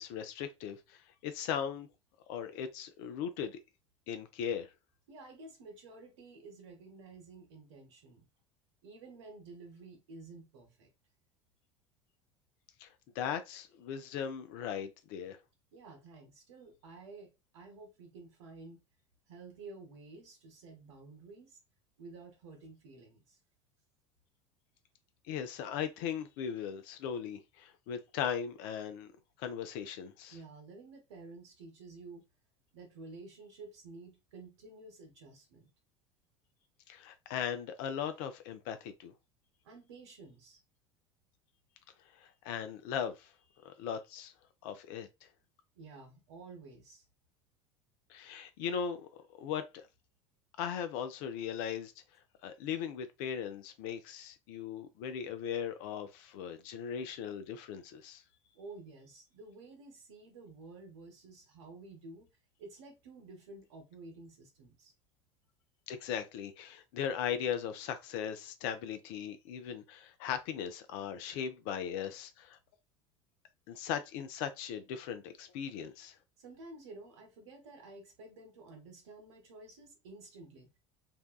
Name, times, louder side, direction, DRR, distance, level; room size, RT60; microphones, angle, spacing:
voice 1, 0.0-1.9 2.3-3.6 4.1-4.7 12.8-12.9 13.2-15.4 25.3-29.1 29.4-30.4 36.9-39.1 42.2-43.3 43.6-44.3 44.6-45.3 48.1-49.9 50.6-51.9 52.4-58.2 65.9-72.6 73.7-76.2, left 8 dB, 50° left, 0.4 m, -38 dB
voice 2, 5.1-8.3 8.8-10.9 15.7-18.8 19.3-21.6 22.0-23.4 30.3-32.3 32.7-35.7 39.6-40.6 45.7-47.0 58.5-62.3 62.6-64.9 76.4-80.8, right 3 dB, 65° right, 0.9 m, -51 dB
2.6 x 2.2 x 2.2 m
figure-of-eight pair, 70°, 16 cm